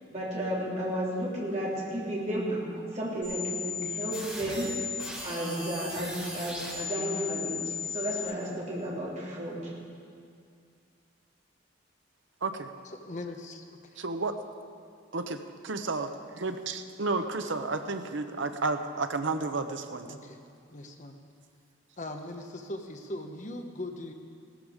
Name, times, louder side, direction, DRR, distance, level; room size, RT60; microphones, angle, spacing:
voice 1, 0.1-4.8 5.2-9.7, equal, 35° right, -5 dB, 3.4 m, -33 dB
sound 1, 3.2-8.2, left 4 dB, 5° right, 4.8 m, -36 dB
voice 2, 12.8-14.0 20.1-20.4 20.7-21.2 22.0-24.1, left 1 dB, 40° left, 4 dB, 1.1 m, -40 dB
voice 3, 14.0-14.4 15.1-16.1 16.3-20.1, right 3 dB, 75° right, 8 dB, 0.9 m, -32 dB
17.0 x 13.5 x 5.1 m, 2.3 s
head